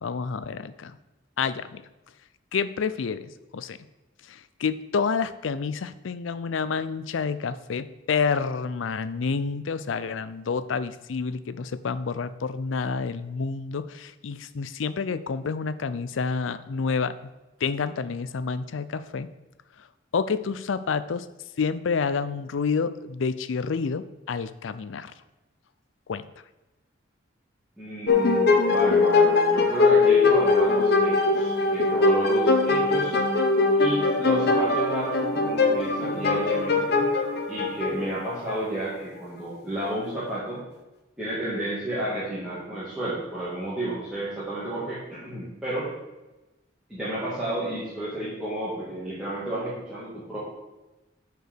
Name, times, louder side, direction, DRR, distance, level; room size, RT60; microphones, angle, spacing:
voice 1, 0.0-1.0 1.4-1.8 2.5-3.8 4.3-17.3 17.6-19.3 20.1-21.3 21.6-25.1 26.1-26.3, left 5 dB, 80° left, 14 dB, 0.5 m, -29 dB
voice 2, 27.8-33.2 33.8-37.1 37.5-40.6 41.2-45.9 46.9-50.4, right 1 dB, 5° right, -11 dB, 2.1 m, -31 dB
sound 1, 28.1-38.5, left 3 dB, 55° left, 0.9 m, -21 dB
7.9 x 4.7 x 6.6 m, 1.1 s
head